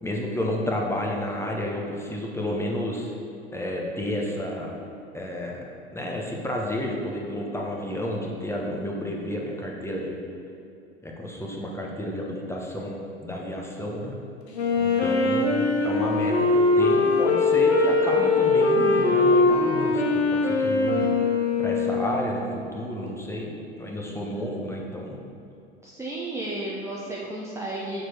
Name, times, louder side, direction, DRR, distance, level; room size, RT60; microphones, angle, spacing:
voice 1, 0.0-3.1 3.5-4.8 5.1-5.6 5.9-10.2 11.0-14.2 14.8-21.1 21.6-23.5 23.8-25.2, left 1 dB, 10° left, -1 dB, 1.1 m, -31 dB
Wind instrument woodwind instrument, 14.5-22.2, left 3 dB, 75° left, 0.9 m, -21 dB
voice 2, 25.8-28.0, right 1 dB, 10° right, -5 dB, 0.8 m, -33 dB
6.4 x 4.6 x 4.5 m, 2.7 s
figure-of-eight pair, 75°, 32 cm